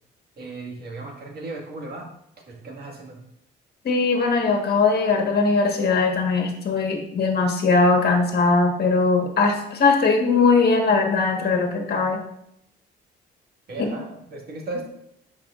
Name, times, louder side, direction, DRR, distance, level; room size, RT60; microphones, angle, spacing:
voice 1, 0.4-2.1 2.5-3.2 13.7-14.9, right 3 dB, 50° right, 0 dB, 1.8 m, -36 dB
voice 2, 3.8-12.2 13.8-13.9, left 4 dB, 55° left, 2 dB, 1.4 m, -20 dB
10.5 x 4.9 x 2.5 m, 0.76 s
cardioid pair, 90°, 20 cm